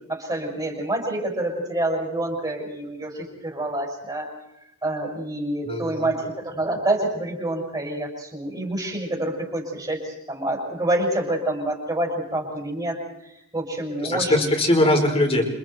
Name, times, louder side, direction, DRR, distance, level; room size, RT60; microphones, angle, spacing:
voice 1, 0.1-4.3 4.8-13.0 13.5-14.5, right 1 dB, 20° right, -1 dB, 6.6 m, -27 dB
voice 2, 5.6-6.1 14.0-15.5, left 1 dB, 25° left, 2 dB, 5.1 m, -21 dB
29.5 x 26.5 x 4.6 m, 0.83 s
head